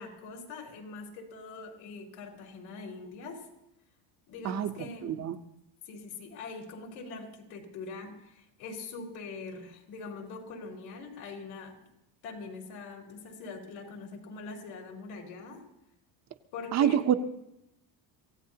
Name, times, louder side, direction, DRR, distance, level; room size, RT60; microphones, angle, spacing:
voice 1, 0.0-3.4 4.3-5.2 5.9-11.7 12.2-15.6 16.5-17.0, left 4 dB, 75° left, -1 dB, 4.4 m, -43 dB
voice 2, 5.0-5.4 16.7-17.2, right 9 dB, 35° right, 9 dB, 0.8 m, -26 dB
25.0 x 16.5 x 2.9 m, 0.83 s
cardioid pair, 145°, 48 cm